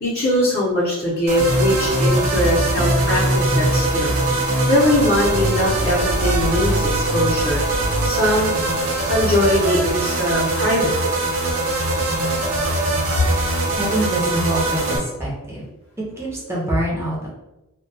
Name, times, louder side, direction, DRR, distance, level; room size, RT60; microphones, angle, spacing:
voice 1, 0.0-4.2 4.7-7.6 8.0-8.5 9.0-10.9, left 1 dB, 45° left, -8 dB, 0.7 m, -21 dB
sound 1, 1.3-15.0, right 2 dB, 65° right, 0.5 m, -21 dB
voice 2, 13.8-15.6 16.2-17.3, equal, 10° right, -5 dB, 0.6 m, -25 dB
2.2 x 2.1 x 2.7 m, 0.98 s
head